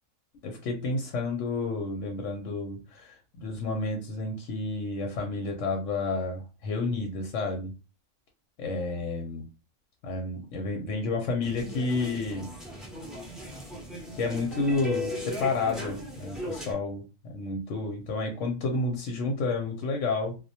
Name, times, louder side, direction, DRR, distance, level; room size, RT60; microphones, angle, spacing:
voice 1, 0.4-7.7 8.6-9.4 10.0-12.5 14.1-17.0 17.3-20.4, left 3 dB, 70° left, 3 dB, 0.8 m, -30 dB
sound 1, 11.4-16.7, left 1 dB, ahead, 0.3 m, -37 dB
2.2 x 2.1 x 2.7 m, 0.30 s
omnidirectional pair, 1.4 m